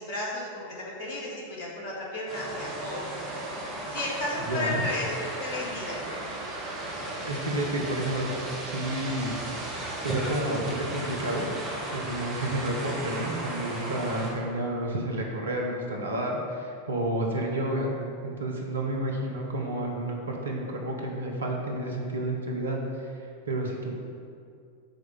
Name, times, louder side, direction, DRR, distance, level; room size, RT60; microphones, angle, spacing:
voice 1, 0.0-3.1 3.5-6.2, left 1 dB, 50° left, -4 dB, 1.9 m, -34 dB
sound 1, 2.3-14.3, right 1 dB, 35° right, 1.7 m, -36 dB
voice 2, 4.4-4.9 7.2-8.3 8.6-9.3 10.0-11.5 11.9-17.9 18.2-23.9, right 1 dB, 70° right, 0 dB, 1.1 m, -30 dB
sound 2, 6.8-12.0, right 1 dB, 5° right, 1.1 m, -38 dB
7.1 x 4.7 x 5.7 m, 2.3 s
figure-of-eight pair, 90°, 0 cm